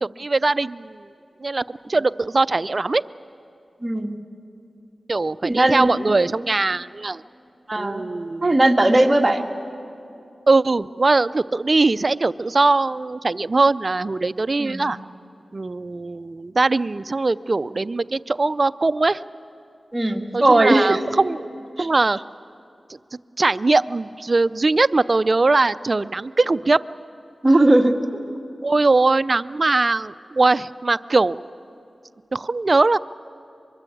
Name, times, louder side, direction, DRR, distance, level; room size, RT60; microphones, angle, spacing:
voice 1, 0.0-1.1 1.4-3.0 5.1-7.2 7.8-8.6 10.5-15.0 15.5-19.2 20.3-21.4 21.8-22.2 23.4-26.8 28.6-31.4 32.3-33.0, right 3 dB, 50° right, 15 dB, 0.5 m, -21 dB
voice 2, 3.8-4.2 5.4-5.9 7.7-8.0 8.4-9.5 14.6-14.9 19.9-21.0 21.8-21.9 27.4-27.9, right 1 dB, 30° right, 3 dB, 2.0 m, -18 dB
23.5 x 22.5 x 8.5 m, 2.6 s
cardioid pair, 50°, 0 cm